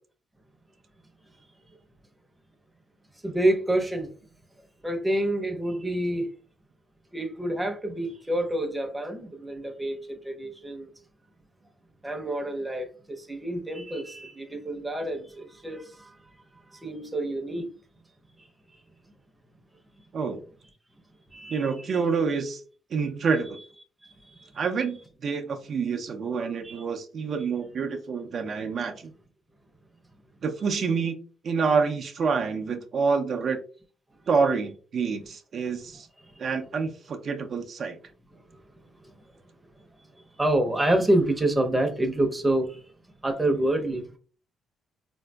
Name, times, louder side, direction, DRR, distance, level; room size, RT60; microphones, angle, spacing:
voice 1, 3.2-4.1 4.8-6.3 7.1-10.9 12.0-16.2 16.6-17.7 18.4-18.5 18.7-18.8 21.3-21.9 24.0-24.5 26.6-26.8 36.2-36.5 38.3-38.6 39.0-39.2 40.4-42.9 43.2-44.1, right 1 dB, 10° right, 0.7 m, -28 dB
voice 2, 21.5-22.6 22.9-23.6 24.6-25.0 25.2-29.1 30.4-31.2 31.4-33.6 34.3-36.1 36.4-38.0, right 5 dB, 55° right, 0.5 m, -27 dB
3.7 x 2.6 x 2.2 m
cardioid pair, 90°, 0 cm